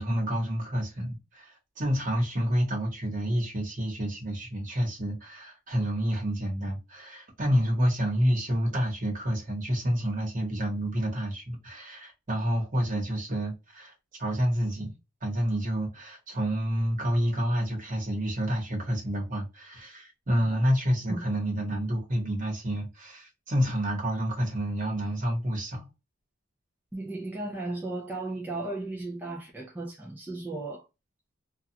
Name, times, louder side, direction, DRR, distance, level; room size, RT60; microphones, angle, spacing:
voice 1, 0.0-13.9 14.2-14.9 15.2-25.9, equal, 40° right, 1.1 m, -29 dB
voice 2, 26.9-30.9, right 2 dB, 10° right, 0.4 m, -35 dB
2.4 x 2.3 x 2.7 m
head